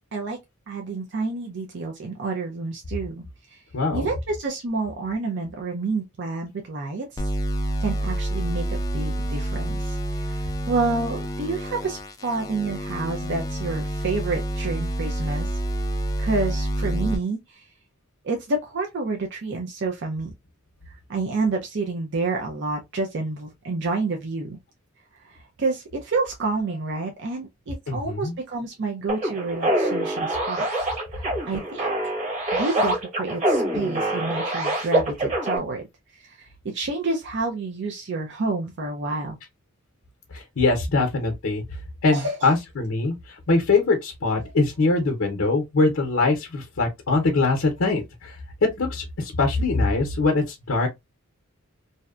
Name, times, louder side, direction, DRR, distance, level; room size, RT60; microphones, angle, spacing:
voice 1, 0.7-3.6 3.9-7.3 7.8-15.6 16.2-17.7 18.2-20.3 21.1-24.6 25.2-30.7 31.1-32.1 32.5-35.8 36.1-39.4 42.1-42.6 44.4-44.5, right 3 dB, 60° right, 0.5 m, -29 dB
voice 2, 3.7-4.1 27.9-28.3 40.3-41.6 42.0-50.9, left 3 dB, 65° left, 0.6 m, -23 dB
sound 1, 7.2-17.2, right 1 dB, 20° left, 0.3 m, -28 dB
sound 2, 29.1-35.6, right 1 dB, 35° right, 1.1 m, -25 dB
2.7 x 2.1 x 2.3 m
head